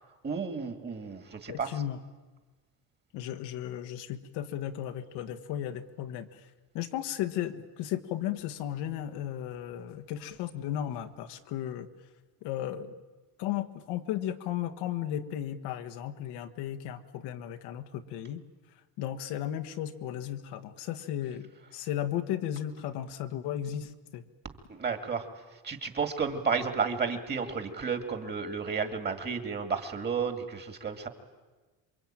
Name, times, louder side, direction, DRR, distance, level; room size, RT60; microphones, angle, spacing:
voice 1, 0.2-1.7 24.7-25.2 25.6-31.1, right 5 dB, 25° right, 7 dB, 2.3 m, -32 dB
voice 2, 1.5-2.0 3.1-6.4 6.7-11.9 12.4-13.0 13.4-18.4 19.0-24.2, left 11 dB, 85° left, 7 dB, 1.7 m, -35 dB
27.5 x 23.5 x 9.0 m, 1.2 s
cardioid pair, 155°, 39 cm